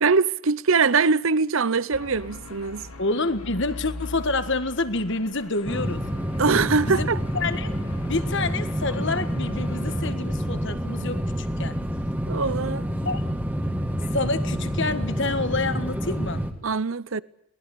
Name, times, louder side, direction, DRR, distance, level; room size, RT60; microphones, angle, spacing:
voice 1, 0.0-2.9 6.4-7.2 12.3-12.9 16.6-17.2, right 4 dB, 65° right, 0.8 m, -22 dB
sound 1, 1.9-10.1, left 2 dB, 80° left, 2.8 m, -41 dB
voice 2, 3.0-6.0 6.8-7.1 7.3-7.7 8.0-11.8 13.0-13.2 14.1-16.4, left 3 dB, 55° left, 1.7 m, -28 dB
sound 2, 5.6-16.5, equal, 10° right, 2.1 m, -28 dB
22.5 x 20.0 x 8.5 m
head